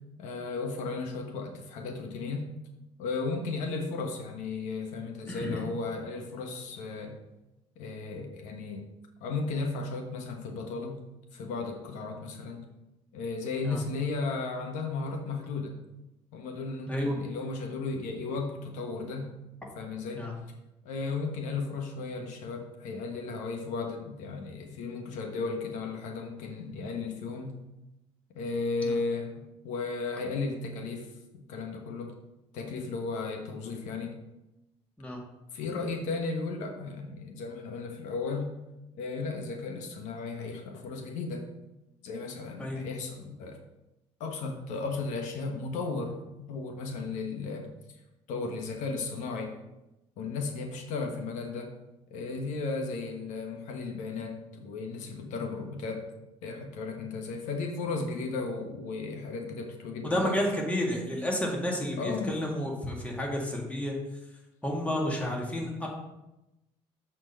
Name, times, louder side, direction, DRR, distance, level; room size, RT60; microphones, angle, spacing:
voice 1, 0.2-2.5 3.0-7.1 7.8-8.9 9.2-11.0 11.3-12.7 13.1-15.8 16.3-19.3 19.7-20.2 20.8-27.5 28.3-32.1 32.5-34.2 35.5-38.5 38.9-41.5 42.0-43.6 44.2-46.2 46.5-47.7 48.3-49.6 50.2-51.7 52.1-56.1 56.4-60.4 62.0-62.3, left 4 dB, 75° left, 3 dB, 1.2 m, -35 dB
voice 2, 5.3-5.7 13.6-13.8 16.9-17.2 20.1-20.3 28.9-29.0 35.0-35.2 42.6-42.8 60.0-64.0 64.6-65.9, left 1 dB, 10° left, -1 dB, 2.0 m, -31 dB
7.5 x 4.4 x 5.6 m, 0.95 s
cardioid pair, 110°, 13 cm